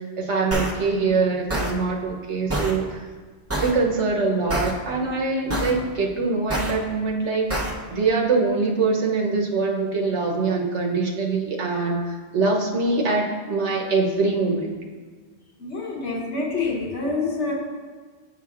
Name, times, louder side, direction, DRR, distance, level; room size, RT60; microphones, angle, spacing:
voice 1, 0.0-3.1 3.6-14.7, right 3 dB, 85° right, 0 dB, 1.2 m, -23 dB
sound 1, 0.5-0.7 1.5-1.7 2.5-2.7 3.5-3.7 4.5-4.7 5.5-5.7 6.5-6.7 7.5-7.7, right 1 dB, 15° right, 0.6 m, -25 dB
voice 2, 15.6-17.5, left 3 dB, 80° left, -3 dB, 1.5 m, -27 dB
8.9 x 5.9 x 2.4 m, 1.4 s
omnidirectional pair, 1.1 m